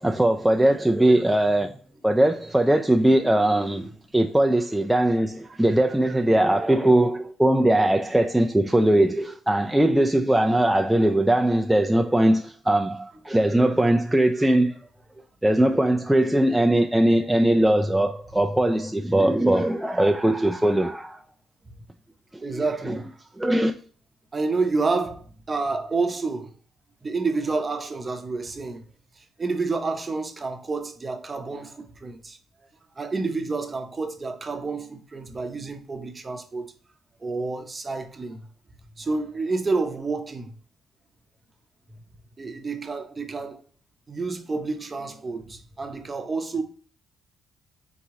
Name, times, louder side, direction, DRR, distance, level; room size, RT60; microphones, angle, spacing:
voice 1, 0.0-1.7 2.0-14.7 15.4-21.2 22.5-22.9 23.4-23.7, right 1 dB, 5° right, 0.3 m, -20 dB
voice 2, 22.4-23.1 24.3-26.5 27.0-28.8 29.2-32.4 33.0-36.7 37.2-38.5 39.0-40.5 42.4-43.6 44.1-46.6, right 3 dB, 30° right, 0.7 m, -29 dB
4.0 x 2.9 x 3.6 m
cardioid pair, 90°, 0 cm